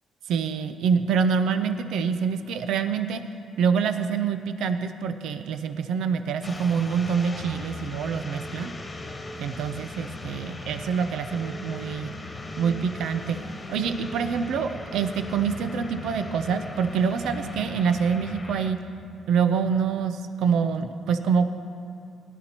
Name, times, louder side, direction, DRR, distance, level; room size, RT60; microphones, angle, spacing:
voice 1, 0.3-3.2 3.6-8.7 9.4-12.1 12.6-13.4 13.7-18.8 19.3-21.5, right 6 dB, 80° right, 8 dB, 0.5 m, -26 dB
sound 1, 6.4-18.7, left 2 dB, 25° left, 1.3 m, -38 dB
18.5 x 11.0 x 3.0 m, 2.9 s
cardioid pair, 90°, 0 cm